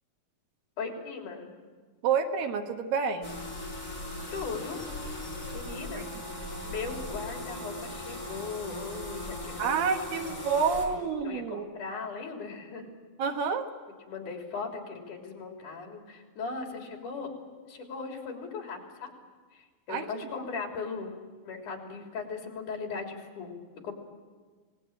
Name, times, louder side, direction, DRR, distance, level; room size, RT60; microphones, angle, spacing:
voice 1, 0.8-1.5 4.3-4.8 5.5-6.1 6.6-9.7 10.2-10.3 11.0-12.9 14.0-17.3 17.7-19.1 19.5-21.2 21.4-23.6 23.8-23.9, left 4 dB, 60° left, 1 dB, 4.9 m, -38 dB
voice 2, 2.0-3.3 9.6-11.6 13.2-13.7 19.9-20.0, right 6 dB, 75° right, 5 dB, 3.2 m, -28 dB
sound 1, 3.2-10.9, left 1 dB, 20° left, 6.5 m, -38 dB
26.0 x 20.0 x 8.8 m, 1.4 s
omnidirectional pair, 4.1 m